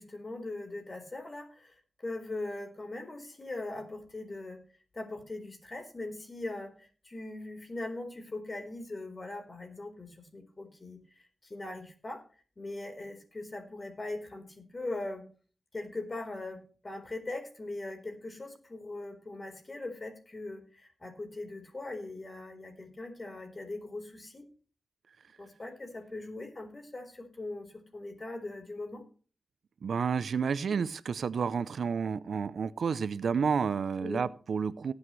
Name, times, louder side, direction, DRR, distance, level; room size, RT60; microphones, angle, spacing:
voice 1, 0.0-4.6 4.9-11.0 11.4-12.2 12.6-15.2 15.7-24.5 25.4-29.0 34.0-34.3, left 2 dB, 40° left, 4.1 m, -40 dB
voice 2, 29.8-34.9, right 6 dB, 85° right, 0.5 m, -30 dB
19.0 x 8.3 x 3.2 m
cardioid pair, 55°, 0 cm